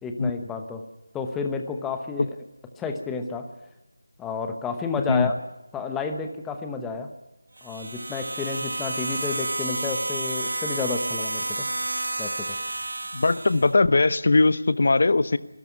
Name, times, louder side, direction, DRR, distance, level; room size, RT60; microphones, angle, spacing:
voice 1, 0.0-0.8 1.1-2.3 2.8-3.5 4.2-5.3 5.7-7.1 7.6-11.7 12.2-12.6, left 4 dB, 5° left, 6 dB, 1.0 m, -31 dB
sound 1, 7.6-13.7, right 2 dB, 80° right, 1.6 m, -30 dB
voice 2, 13.1-15.4, left 3 dB, 50° left, 15 dB, 0.9 m, -20 dB
23.5 x 13.5 x 9.6 m, 0.97 s
figure-of-eight pair, 175°, 0 cm